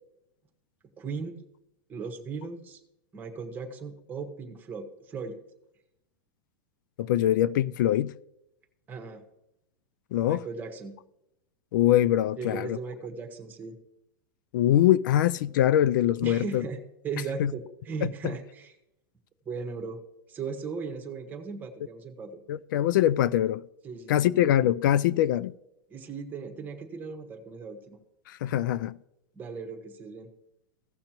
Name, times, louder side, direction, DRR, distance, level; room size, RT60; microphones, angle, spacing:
voice 1, 1.0-1.4 1.9-2.8 3.1-5.3 8.9-9.2 10.3-11.0 12.4-13.7 16.2-18.7 19.4-20.0 20.3-22.4 23.8-24.3 25.9-28.0 29.3-30.3, right 5 dB, 15° right, 1.3 m, -37 dB
voice 2, 7.0-8.1 10.1-10.4 11.7-12.8 14.5-16.6 17.4-17.5 18.0-18.1 22.5-23.6 24.1-25.5 28.3-29.0, left 12 dB, 65° left, 0.4 m, -23 dB
16.0 x 6.5 x 3.0 m
supercardioid pair, 155°, 11 cm